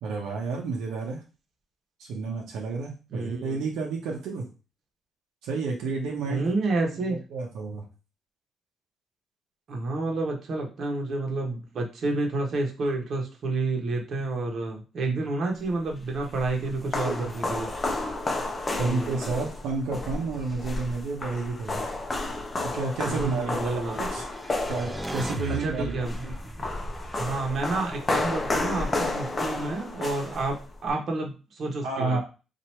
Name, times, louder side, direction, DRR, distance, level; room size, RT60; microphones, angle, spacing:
voice 1, 0.0-1.2 2.0-4.5 5.4-6.5 6.8-7.9 15.1-15.2 16.8-17.4 18.8-21.8 22.7-24.3 24.7-25.9 31.8-32.2, right 4 dB, 90° right, -1 dB, 0.8 m, -31 dB
voice 2, 3.1-3.6 6.3-7.2 9.7-17.7 18.8-19.4 23.1-24.0 25.5-26.3 27.1-30.6 30.8-32.2, right 2 dB, 55° right, 1 dB, 1.1 m, -29 dB
sound 1, 15.9-30.9, left 2 dB, 30° left, 0.6 m, -32 dB
sound 2, 23.9-28.3, right 1 dB, 15° right, 0.5 m, -38 dB
2.9 x 2.6 x 4.3 m, 0.33 s
cardioid pair, 90°, 0 cm